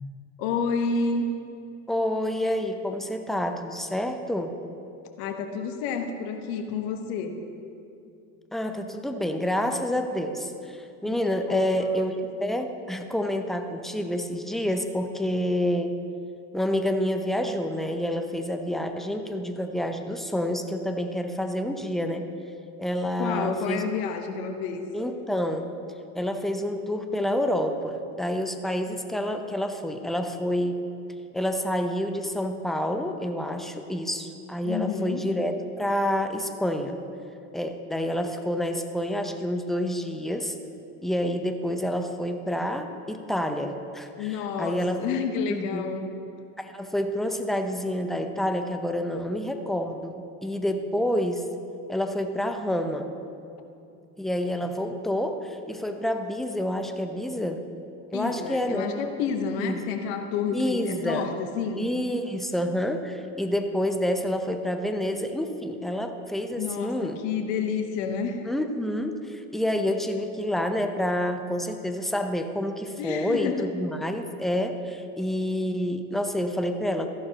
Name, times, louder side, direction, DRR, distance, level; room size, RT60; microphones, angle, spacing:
voice 1, 0.4-1.3 5.2-7.4 11.0-11.1 11.5-11.8 23.2-24.8 34.6-35.3 44.2-46.1 58.1-61.8 66.6-67.0 67.2-68.5 73.0-73.7, left 5 dB, 65° left, 6 dB, 1.3 m, -29 dB
voice 2, 1.9-4.6 8.5-16.0 16.5-22.3 22.8-23.9 24.9-25.7 26.1-30.8 31.3-37.0 37.5-40.5 41.0-45.0 45.5-45.9 46.6-51.5 51.9-53.1 54.2-57.6 58.1-58.9 59.6-59.8 60.5-61.3 61.8-67.2 68.4-77.1, equal, ahead, 6 dB, 0.7 m, -28 dB
14.0 x 11.0 x 3.0 m, 2.6 s
hypercardioid pair, 85°, 44 cm